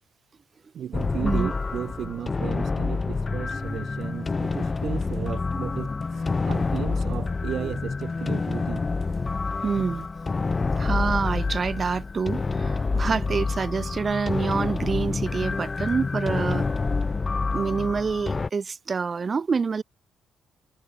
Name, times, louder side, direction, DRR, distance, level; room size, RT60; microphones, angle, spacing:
voice 1, 0.7-8.8, right 9 dB, 65° right, 0.7 m, -34 dB
sound 1, 0.9-18.5, left 4 dB, 30° left, 1.4 m, -27 dB
voice 2, 9.6-10.1 10.8-16.7 17.5-19.8, right 5 dB, 35° right, 1.0 m, -27 dB
cardioid pair, 90°, 0 cm